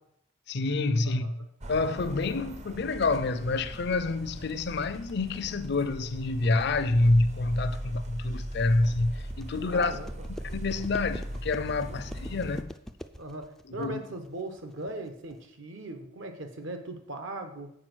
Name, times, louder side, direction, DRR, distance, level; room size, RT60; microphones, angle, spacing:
voice 1, 0.5-1.3 1.7-9.9 10.4-12.7 13.7-14.0, left 2 dB, 55° left, 0.5 m, -27 dB
sound 1, 1.6-12.6, right 1 dB, 35° right, 0.6 m, -39 dB
sound 2, 3.5-15.5, equal, ahead, 0.3 m, -46 dB
voice 2, 9.7-10.3 11.9-12.0 13.2-17.7, right 2 dB, 70° right, 1.2 m, -39 dB
7.5 x 4.9 x 6.2 m
head